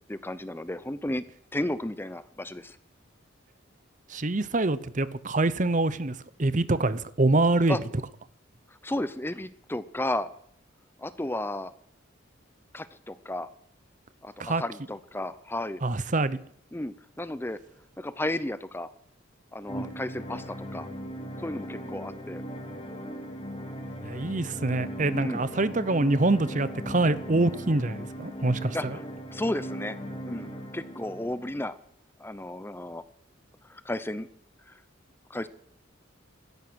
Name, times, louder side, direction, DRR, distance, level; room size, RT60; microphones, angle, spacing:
voice 1, 0.1-1.2 1.5-2.8 7.7-7.8 8.7-10.3 11.0-11.7 12.7-13.5 14.2-15.8 16.7-17.6 18.0-18.9 19.5-20.9 21.4-22.4 25.1-25.4 28.7-29.0 29.3-30.0 30.3-31.8 32.2-33.0 33.6-34.3 34.7-34.8 35.3-35.5, left 1 dB, 10° left, 0.6 m, -33 dB
voice 2, 4.1-7.8 14.4-14.6 15.8-16.4 24.0-29.0, right 2 dB, 40° right, 0.8 m, -25 dB
sound 1, 19.7-31.6, equal, 30° left, 2.8 m, -38 dB
16.5 x 13.5 x 6.3 m
head